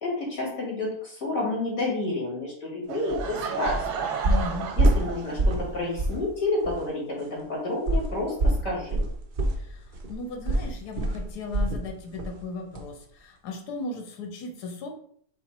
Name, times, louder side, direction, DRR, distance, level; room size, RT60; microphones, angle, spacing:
voice 1, 0.0-4.0 4.8-9.0, left 2 dB, 55° left, -3 dB, 2.4 m, -30 dB
Laughter / Crowd, 2.9-5.7, right 7 dB, 90° right, 1.3 m, -33 dB
sound 1, 3.1-3.3 3.6-3.9 4.2-5.7 6.0-6.2 6.6-6.7 7.9-11.9 12.2-12.4 12.7-12.8, right 1 dB, 70° right, 0.4 m, -25 dB
voice 2, 4.2-4.7 9.5-14.9, left 3 dB, 80° left, 3 dB, 1.4 m, -36 dB
5.7 x 2.1 x 4.3 m, 0.62 s
omnidirectional pair, 1.7 m